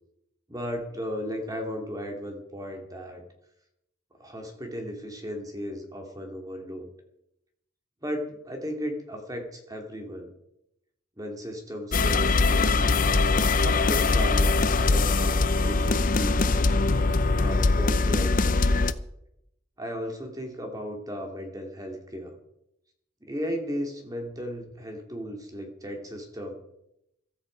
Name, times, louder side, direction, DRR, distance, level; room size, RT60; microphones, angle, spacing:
voice 1, 0.5-3.2 4.2-6.9 8.0-10.3 11.2-13.0 13.6-16.6 17.0-18.6 19.8-22.4 23.2-26.5, equal, 15° right, 3 dB, 2.4 m, -35 dB
sound 1, 11.9-18.9, left 3 dB, 40° left, 0.6 m, -22 dB
15.5 x 13.0 x 5.1 m, 0.81 s
head